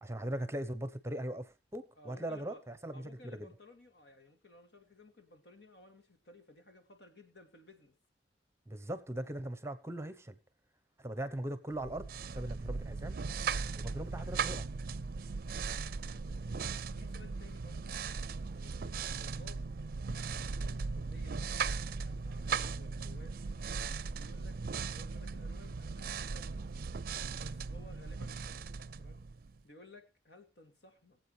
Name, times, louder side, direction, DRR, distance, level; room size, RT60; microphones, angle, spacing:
voice 1, 0.0-3.5 8.7-10.4 11.0-13.2 13.8-14.7, right 1 dB, 15° right, 0.8 m, -40 dB
voice 2, 2.0-2.6 2.9-7.9 16.0-17.9 18.5-19.7 20.6-21.4 22.0-23.4 24.1-24.6 24.9-26.9 27.4-29.2 29.6-31.2, left 2 dB, 75° left, 2.4 m, -57 dB
sound 1, 11.8-29.6, right 5 dB, 55° right, 0.5 m, -38 dB
22.5 x 7.7 x 3.3 m
head